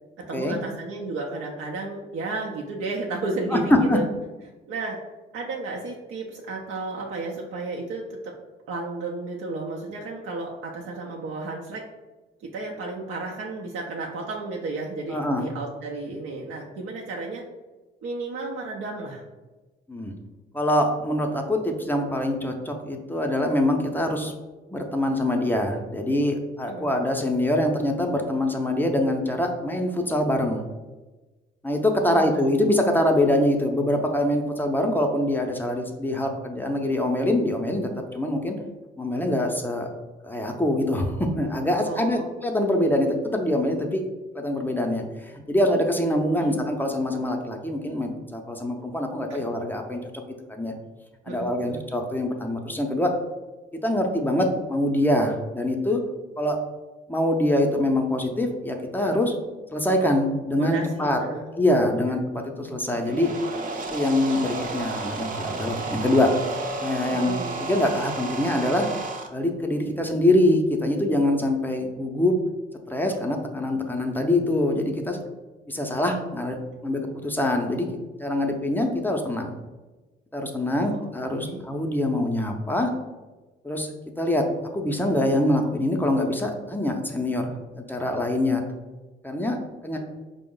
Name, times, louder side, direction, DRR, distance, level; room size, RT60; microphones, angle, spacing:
voice 1, 0.3-4.0 4.7-5.0 5.3-8.3 8.7-11.8 12.4-17.4 18.0-19.2 26.7-26.9 32.0-32.4 41.8-42.3 46.4-46.6 49.3-49.5 51.3-51.8 60.6-61.5 67.1-67.5 80.8-81.6, right 3 dB, 85° right, -2 dB, 0.6 m, -33 dB
voice 2, 15.1-15.5 19.9-20.1 20.5-24.3 24.7-30.6 31.6-38.6 39.0-39.9 40.2-44.0 44.3-45.0 45.5-50.0 50.5-50.7 51.3-53.1 53.8-56.0 56.4-56.6 57.1-59.3 59.7-61.2 61.6-63.3 63.9-66.3 66.8-68.9 69.3-72.3 72.9-75.2 75.7-76.6 76.8-77.9 78.2-79.5 80.3-82.9 83.6-83.9 84.2-84.5 84.7-87.6 87.9-88.6 89.2-89.6 89.8-90.0, left 1 dB, 10° left, 3 dB, 0.5 m, -24 dB
sound 1, 62.8-69.3, right 3 dB, 45° right, 0.5 m, -32 dB
4.3 x 2.0 x 3.7 m, 1.2 s
cardioid pair, 90°, 20 cm